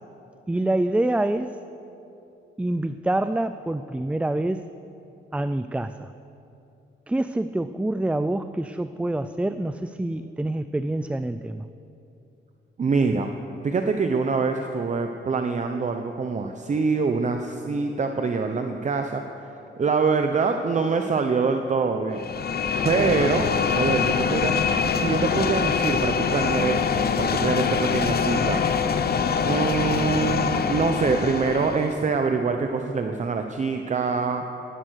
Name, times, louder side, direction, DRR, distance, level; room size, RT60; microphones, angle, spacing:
voice 1, 0.5-1.6 2.6-4.7 5.3-6.1 7.1-11.7, right 1 dB, 5° right, 11 dB, 0.3 m, -26 dB
voice 2, 12.8-13.3 13.6-22.3 22.8-29.1 29.4-34.4, right 4 dB, 35° right, 5 dB, 0.8 m, -25 dB
sound 1, 22.2-32.0, left 6 dB, 50° left, 0.8 m, -24 dB
17.0 x 12.0 x 6.4 m, 2.8 s
cardioid pair, 115°, 20 cm